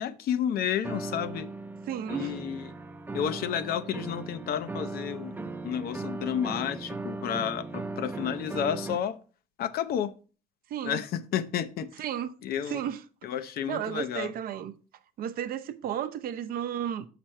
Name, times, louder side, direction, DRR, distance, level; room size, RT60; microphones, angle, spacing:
voice 1, 0.0-1.5 2.1-2.7 3.1-5.4 5.6-9.2 9.6-10.1 10.8-12.0 12.4-12.8 13.2-14.3, left 9 dB, 65° left, 0.6 m, -31 dB
sound 1, 0.8-9.0, right 3 dB, 10° right, 0.5 m, -38 dB
voice 2, 1.9-2.3 10.7-11.0 12.0-12.3 12.7-13.0 13.7-14.7 15.2-17.1, right 9 dB, 60° right, 0.6 m, -33 dB
6.1 x 5.1 x 4.3 m
cardioid pair, 110°, 17 cm